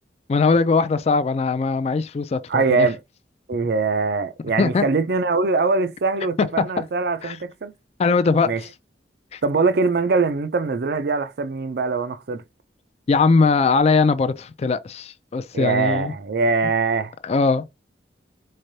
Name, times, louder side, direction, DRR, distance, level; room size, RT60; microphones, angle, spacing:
voice 1, 0.3-2.9 4.6-4.8 7.2-7.4 8.0-8.7 9.3-9.4 13.1-16.1 17.2-17.6, left 4 dB, 35° left, 0.3 m, -20 dB
voice 2, 2.5-3.0 3.5-7.7 8.4-8.6 9.4-12.4 15.5-17.1, right 4 dB, 60° right, 0.5 m, -22 dB
4.3 x 3.2 x 2.6 m
head